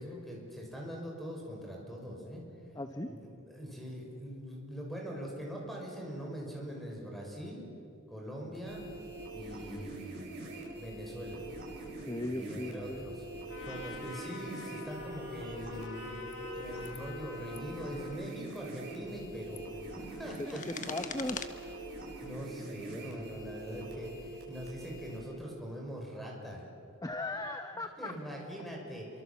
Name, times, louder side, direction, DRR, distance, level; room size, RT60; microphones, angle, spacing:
voice 1, 0.0-2.4 3.1-7.6 8.1-8.8 9.3-10.5 10.7-11.4 12.3-13.2 13.6-16.2 16.6-19.6 20.0-20.8 22.2-26.6 28.0-29.1, equal, ahead, -1 dB, 6.2 m, -42 dB
voice 2, 2.7-3.1 12.0-13.0 20.4-21.4 27.0-28.1, left 1 dB, 15° left, 7 dB, 0.9 m, -37 dB
sound 1, 8.5-25.2, right 2 dB, 50° right, 7.9 m, -44 dB
Trumpet, 13.5-18.4, left 4 dB, 60° left, 2.7 m, -48 dB
sound 2, 16.2-16.4 16.8-17.1 17.4-17.6 18.4-18.7 19.3-21.5, left 6 dB, 35° left, 1.4 m, -44 dB
29.0 x 24.0 x 7.2 m, 2.7 s
head